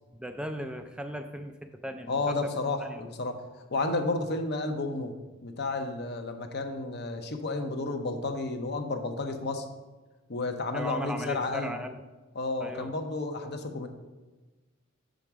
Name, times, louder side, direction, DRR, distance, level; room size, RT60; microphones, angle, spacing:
voice 1, 0.1-2.5 2.8-3.1 10.7-12.0 12.6-12.9, equal, 5° right, 7 dB, 0.3 m, -37 dB
voice 2, 2.1-5.1 5.4-9.6 10.3-11.7 12.4-13.9, left 3 dB, 55° left, 6 dB, 0.9 m, -32 dB
6.9 x 5.1 x 6.1 m, 1.2 s
head